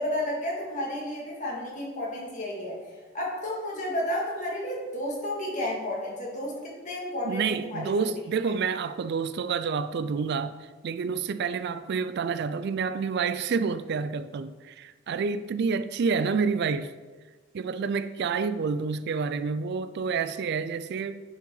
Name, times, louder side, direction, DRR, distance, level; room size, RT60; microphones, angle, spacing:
voice 1, 0.0-8.1, left 1 dB, 40° left, 2.3 m, -32 dB
voice 2, 7.2-10.6 10.8-16.9 17.5-21.2, right 5 dB, 55° right, 0.4 m, -28 dB
10.0 x 5.5 x 4.0 m
head